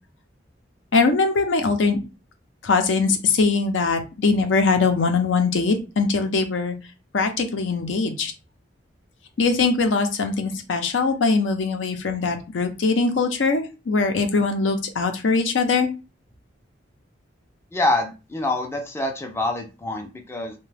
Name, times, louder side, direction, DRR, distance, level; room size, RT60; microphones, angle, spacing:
voice 1, 0.9-2.0 2.6-6.8 7.1-8.3 9.4-15.9, left 4 dB, 80° left, 5 dB, 0.6 m, -21 dB
voice 2, 17.7-20.5, left 2 dB, 15° left, 3 dB, 0.3 m, -26 dB
2.7 x 2.2 x 3.2 m, 0.30 s
head